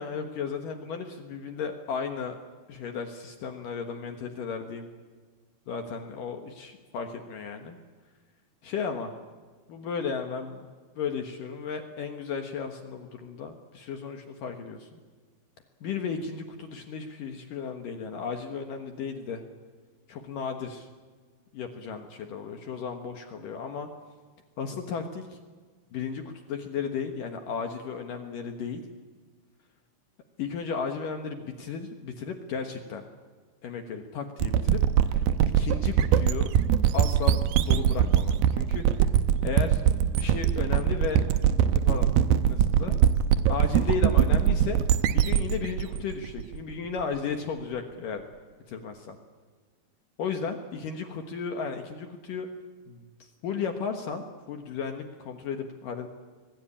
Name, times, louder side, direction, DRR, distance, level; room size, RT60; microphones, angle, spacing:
voice 1, 0.0-2.4 2.7-4.9 5.7-7.8 8.6-9.1 9.7-10.7 11.0-15.0 15.8-19.4 20.1-20.9 21.5-23.9 24.6-25.4 25.9-28.8 30.4-33.1 33.6-34.8 35.1-35.2 35.6-36.5 36.9-39.1 39.4-39.8 40.1-41.2 41.7-42.1 42.5-43.0 43.5-44.8 45.1-48.2 48.7-49.2 50.2-52.5 52.9-56.1, left 6 dB, 60° left, 5 dB, 2.4 m, -34 dB
sound 1, 34.4-47.0, right 9 dB, 80° right, 2.2 m, -23 dB
26.0 x 20.0 x 8.6 m, 1.5 s
omnidirectional pair, 5.4 m